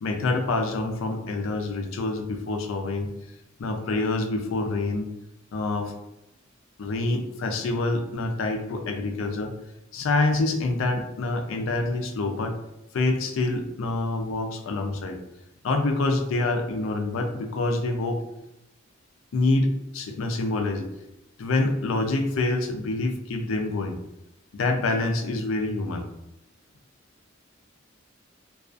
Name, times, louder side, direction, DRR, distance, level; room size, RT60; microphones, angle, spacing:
voice 1, 0.0-3.1 3.6-5.1 5.5-6.0 6.8-9.5 9.9-12.6 12.9-15.2 15.6-18.2 19.3-20.8 21.4-24.0 24.5-26.1, left 2 dB, 85° left, 4 dB, 0.4 m, -26 dB
2.4 x 2.3 x 2.4 m, 0.90 s
head